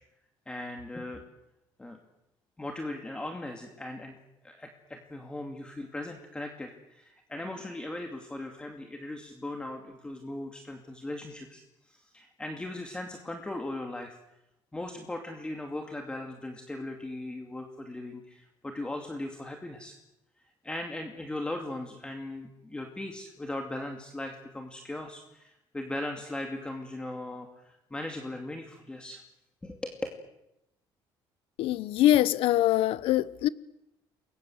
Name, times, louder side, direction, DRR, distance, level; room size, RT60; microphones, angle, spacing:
voice 1, 0.5-1.2 1.8-2.0 2.6-4.2 4.4-14.2 14.7-19.9 20.6-29.2 29.6-29.9, left 1 dB, 10° left, 2.6 m, -38 dB
voice 2, 31.6-33.5, left 13 dB, 70° left, 1.0 m, -23 dB
30.0 x 22.5 x 8.0 m
cardioid pair, 150°, 10 cm